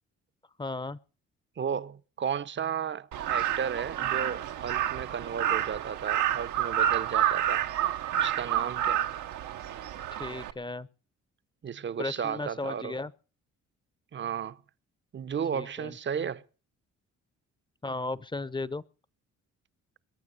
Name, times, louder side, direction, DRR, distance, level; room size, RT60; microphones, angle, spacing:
voice 1, 0.6-1.0 10.2-10.9 12.0-13.1 15.5-15.9 17.8-18.8, left 2 dB, 15° left, 0.7 m, -35 dB
voice 2, 1.6-7.6 8.2-9.1 11.6-13.0 14.1-14.6 15.1-16.4, right 7 dB, 40° right, 0.8 m, -34 dB
Crow, 3.1-10.5, right 11 dB, 80° right, 1.1 m, -29 dB
22.0 x 9.0 x 6.7 m
cardioid pair, 90°, 30 cm